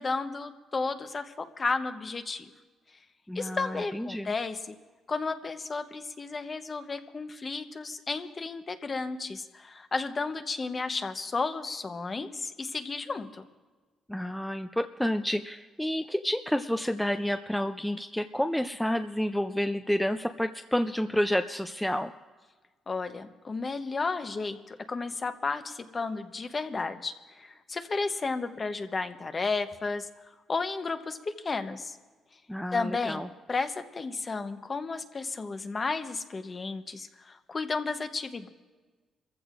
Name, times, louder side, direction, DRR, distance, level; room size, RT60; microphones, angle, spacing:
voice 1, 0.0-2.4 3.3-4.7 5.1-13.4 22.9-30.1 30.5-32.0 32.7-38.5, left 4 dB, 35° left, 8 dB, 1.0 m, -33 dB
voice 2, 3.3-4.3 14.1-22.1 32.5-33.3, equal, 5° left, 7 dB, 0.5 m, -29 dB
28.0 x 15.0 x 2.5 m, 1.3 s
cardioid pair, 90°, 0 cm